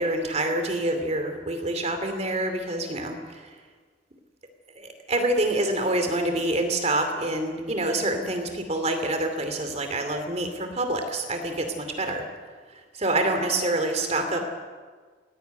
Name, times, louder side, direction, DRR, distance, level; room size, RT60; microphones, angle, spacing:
voice 1, 0.0-3.6 4.8-12.3 13.0-14.4, right 1 dB, 35° right, 6 dB, 2.6 m, -26 dB
18.5 x 17.0 x 9.3 m, 1.5 s
head